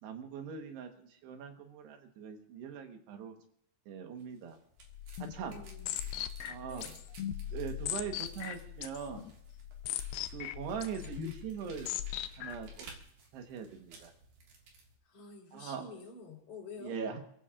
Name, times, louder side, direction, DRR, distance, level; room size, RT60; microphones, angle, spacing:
voice 1, 0.0-3.3 3.9-4.6 5.2-5.6 6.5-6.8 7.5-9.3 10.3-11.9 12.4-12.9 13.3-14.1 15.5-15.8 16.8-17.2, right 6 dB, 75° right, 5 dB, 3.2 m, -41 dB
sound 1, 4.2-15.0, right 4 dB, 60° right, 3.3 m, -57 dB
sound 2, 4.8-12.8, left 11 dB, 85° left, 2.1 m, -40 dB
voice 2, 5.5-6.1 6.7-7.0 15.0-17.0, left 3 dB, 45° left, -2 dB, 4.9 m, -48 dB
28.0 x 15.0 x 2.5 m, 0.69 s
omnidirectional pair, 5.1 m